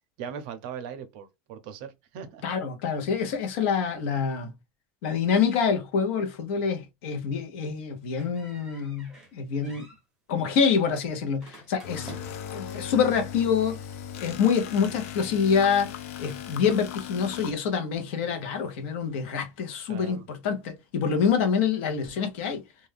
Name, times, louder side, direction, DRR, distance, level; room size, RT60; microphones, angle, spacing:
voice 1, 0.2-2.4 9.6-9.9 19.9-20.3, right 7 dB, 50° right, 0.5 m, -39 dB
voice 2, 2.4-4.5 5.0-9.8 10.3-12.1 12.5-13.8 14.2-15.9 16.2-22.6, left 6 dB, 60° left, 0.8 m, -26 dB
sound 1, 8.2-9.3 9.6-10.0 11.4-12.6, right 1 dB, 5° right, 0.7 m, -48 dB
sound 2, 11.8-17.5, left 9 dB, 90° left, 0.5 m, -38 dB
2.4 x 2.2 x 3.3 m
supercardioid pair, 180°, 8 cm